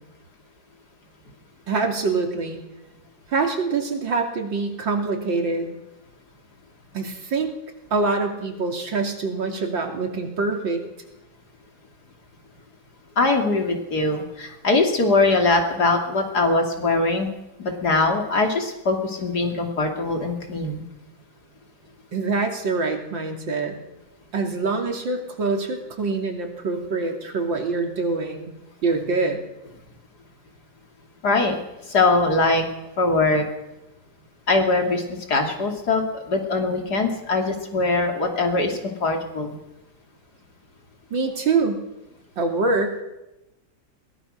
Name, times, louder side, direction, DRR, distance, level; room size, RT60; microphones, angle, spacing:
voice 1, 1.7-2.6 3.3-5.7 6.9-7.5 7.9-10.8 22.1-23.8 24.3-28.5 28.8-29.4 41.1-41.8 42.4-43.0, right 3 dB, 80° right, 3 dB, 3.6 m, -25 dB
voice 2, 13.2-17.3 17.6-20.8 31.2-31.6 31.9-32.7 33.0-33.4 34.5-39.6, left 3 dB, 60° left, 3 dB, 3.4 m, -22 dB
22.0 x 19.0 x 6.5 m, 0.95 s
omnidirectional pair, 2.0 m